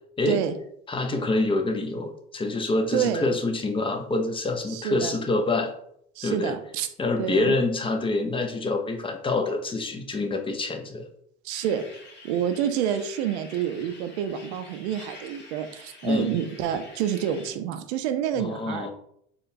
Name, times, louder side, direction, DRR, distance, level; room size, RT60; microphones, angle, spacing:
voice 1, 0.3-0.6 2.9-3.4 4.7-5.2 6.2-6.9 7.2-7.6 11.4-11.8 12.2-18.9, right 9 dB, 75° right, 9 dB, 0.5 m, -28 dB
voice 2, 0.9-5.7 6.2-6.6 7.0-11.1 16.0-16.3 18.4-18.9, left 2 dB, 15° left, 5 dB, 0.4 m, -26 dB
sound 1, 11.5-17.5, left 2 dB, 30° left, 1.2 m, -47 dB
3.8 x 2.2 x 2.6 m, 0.71 s
hypercardioid pair, 80°, 33 cm